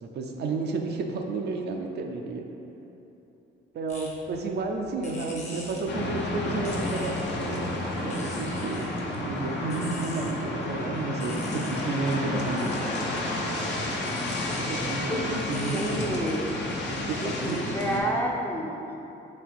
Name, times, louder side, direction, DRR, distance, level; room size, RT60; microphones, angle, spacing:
voice 1, 0.0-2.4 3.7-13.6 14.6-16.1 16.9-18.1, right 3 dB, 60° right, 2 dB, 0.5 m, -32 dB
sound 1, 3.9-16.7, left 2 dB, 35° left, 1.0 m, -47 dB
sound 2, 5.9-18.0, left 2 dB, 60° left, 0.7 m, -31 dB
voice 2, 15.1-16.4 17.2-19.0, equal, 10° left, -1 dB, 0.5 m, -30 dB
4.1 x 2.8 x 4.5 m, 2.9 s
cardioid pair, 90°, 20 cm